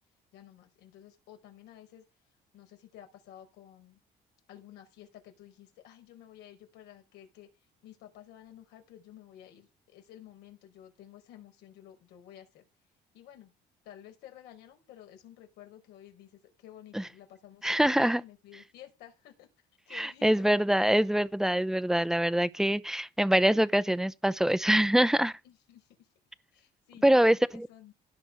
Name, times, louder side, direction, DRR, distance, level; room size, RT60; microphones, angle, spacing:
voice 1, 0.3-2.1 2.5-4.0 4.5-7.5 7.8-12.6 13.1-13.5 13.8-19.5 19.9-20.5 25.4-26.1 26.5-27.9, left 11 dB, 85° left, 5.4 m, -52 dB
voice 2, 17.6-18.2 19.9-25.4 27.0-27.7, right 1 dB, 5° right, 0.7 m, -24 dB
17.0 x 6.1 x 5.7 m
cardioid pair, 110°, 17 cm